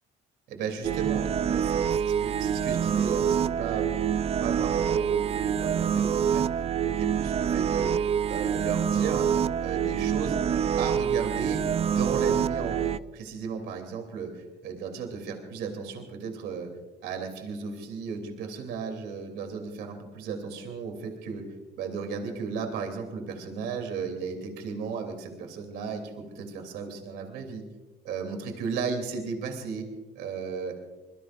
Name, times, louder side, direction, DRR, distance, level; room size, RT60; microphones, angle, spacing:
voice 1, 0.5-3.9 4.4-6.5 6.9-7.9 8.3-9.3 9.6-10.4 10.8-16.7 17.0-21.4 21.8-27.7 28.0-29.9 30.1-30.7, right 5 dB, 85° right, 4 dB, 3.1 m, -35 dB
sound 1, 0.8-13.0, right 8 dB, 35° right, 0.4 m, -26 dB
25.5 x 22.5 x 2.6 m, 1.2 s
cardioid pair, 110°, 17 cm